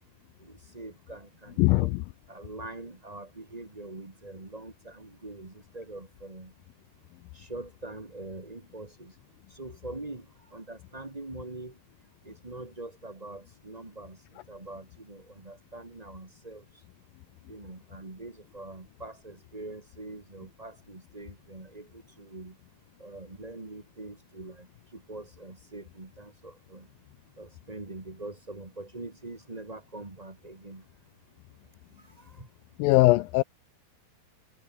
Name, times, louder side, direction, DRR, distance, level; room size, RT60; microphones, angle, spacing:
voice 1, 0.4-1.9 2.3-6.5 7.3-9.1 9.5-10.2 10.5-11.7 12.2-14.2 14.5-16.6 17.5-22.5 23.0-24.7 24.9-26.9 27.4-30.8 32.2-32.5, right 2 dB, 40° right, 0.5 m, -43 dB
voice 2, 1.6-2.0 32.8-33.4, left 20 dB, 85° left, 2.0 m, -20 dB
omnidirectional pair, 4.6 m